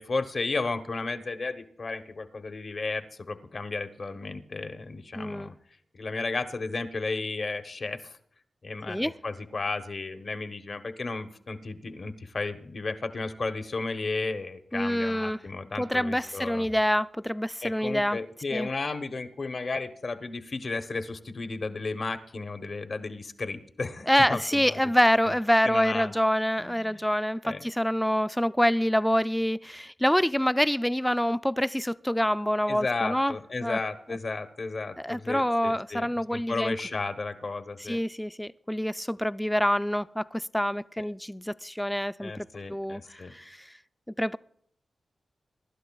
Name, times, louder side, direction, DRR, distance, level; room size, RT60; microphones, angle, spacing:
voice 1, 0.0-5.5 5.9-8.2 8.6-16.7 17.6-24.9 25.2-25.3 25.6-26.1 26.6-27.1 27.4-27.6 32.7-38.0 41.0-41.1 42.2-43.3, left 3 dB, 60° left, 0.9 m, -34 dB
voice 2, 5.1-5.5 8.9-9.1 14.7-15.4 15.8-18.2 18.5-18.7 24.1-33.3 33.6-33.8 35.0-36.7 37.8-43.6 44.2-44.4, equal, 5° left, 0.3 m, -26 dB
23.0 x 11.5 x 2.3 m
cardioid pair, 45°, 0 cm